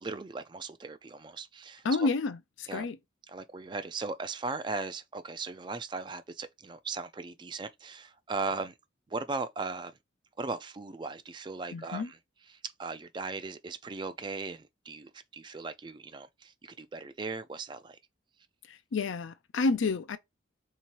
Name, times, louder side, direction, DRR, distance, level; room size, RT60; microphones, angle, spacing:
voice 1, 0.0-1.8 2.7-2.8 3.3-8.7 9.1-9.9 10.4-12.1 12.6-18.0, right 3 dB, 25° right, 0.3 m, -38 dB
voice 2, 1.8-3.0 11.7-12.1 18.7-20.2, left 3 dB, 80° left, 0.5 m, -30 dB
3.8 x 2.8 x 4.5 m
head